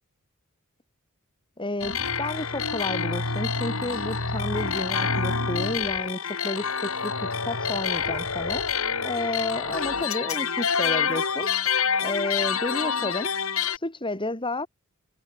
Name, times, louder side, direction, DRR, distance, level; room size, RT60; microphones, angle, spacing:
voice 1, 1.6-11.5 12.0-13.3 13.7-14.7, left 2 dB, 25° left, 3.5 m, -31 dB
sound 1, 1.8-13.8, left 6 dB, 70° left, 4.5 m, -27 dB
head